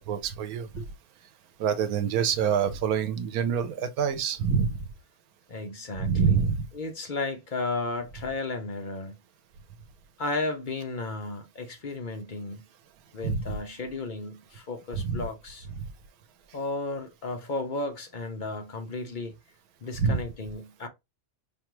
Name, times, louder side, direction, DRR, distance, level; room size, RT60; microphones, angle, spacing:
voice 1, 0.1-0.7 1.6-4.8 6.0-6.6 13.2-13.6 14.9-15.2 20.0-20.2, right 6 dB, 85° right, 1.1 m, -26 dB
voice 2, 5.5-6.5 6.7-9.2 10.2-12.6 13.1-15.7 16.5-19.3 19.8-20.9, left 3 dB, 50° left, 0.6 m, -34 dB
5.2 x 2.3 x 3.0 m
omnidirectional pair, 1.5 m